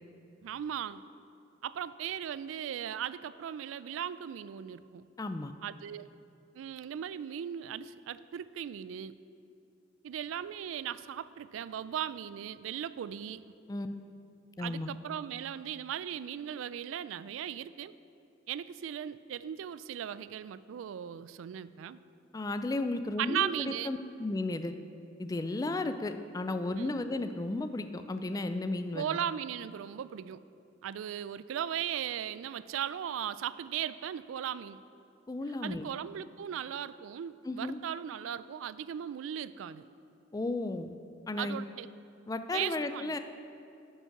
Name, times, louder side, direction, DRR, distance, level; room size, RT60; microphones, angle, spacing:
voice 1, 0.4-1.0 1.6-5.1 5.6-6.1 6.5-9.2 10.0-13.4 14.6-17.9 18.5-22.0 23.2-23.9 26.8-26.9 28.9-30.4 30.8-34.8 35.6-39.9 41.4-41.9 42.5-43.2, right 9 dB, 90° right, 15 dB, 0.3 m, -37 dB
voice 2, 5.2-5.5 13.7-13.9 14.6-14.9 22.3-24.7 25.2-29.1 35.3-35.9 37.4-37.8 40.3-40.9 41.3-41.6 42.3-43.2, left 2 dB, 20° left, 9 dB, 0.3 m, -34 dB
9.8 x 5.4 x 5.8 m, 2.6 s
head